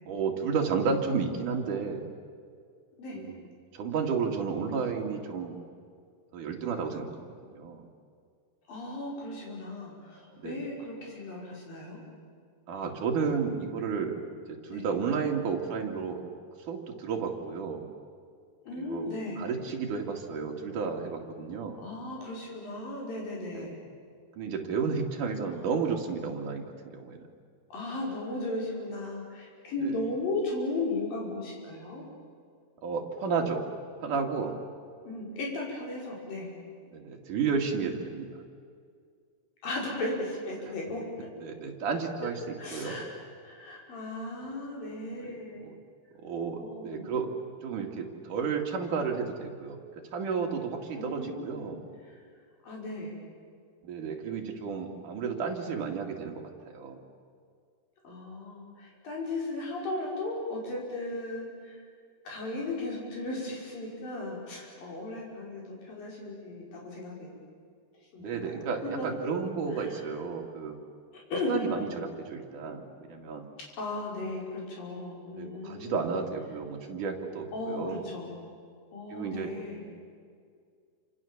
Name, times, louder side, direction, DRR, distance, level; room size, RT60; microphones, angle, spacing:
voice 1, 0.1-2.1 3.1-3.4 3.7-5.6 6.3-7.8 10.4-10.7 12.7-14.2 14.5-16.2 16.7-17.9 18.8-19.1 19.4-21.8 23.5-23.8 24.4-27.2 29.8-30.0 32.8-33.6 34.0-34.6 36.9-38.3 41.4-43.0 45.2-45.3 45.6-45.7 46.2-47.3 47.6-49.8 50.1-51.8 53.8-57.0 68.2-70.8 71.5-73.5 75.4-78.1 79.1-79.5, right 5 dB, 55° right, 1 dB, 3.7 m, -32 dB
voice 2, 8.7-12.0 14.7-14.8 18.7-19.4 21.8-23.8 27.7-32.0 35.0-36.5 39.6-41.3 42.6-43.1 43.4-45.6 46.6-47.2 50.9-51.7 52.0-52.1 52.6-53.2 58.0-61.8 62.3-67.3 68.1-69.1 69.8-70.0 71.1-71.6 73.8-76.0 77.5-78.3 78.9-79.9, left 2 dB, 65° left, -3 dB, 7.2 m, -36 dB
28.5 x 26.5 x 7.3 m, 2.2 s
omnidirectional pair, 4.4 m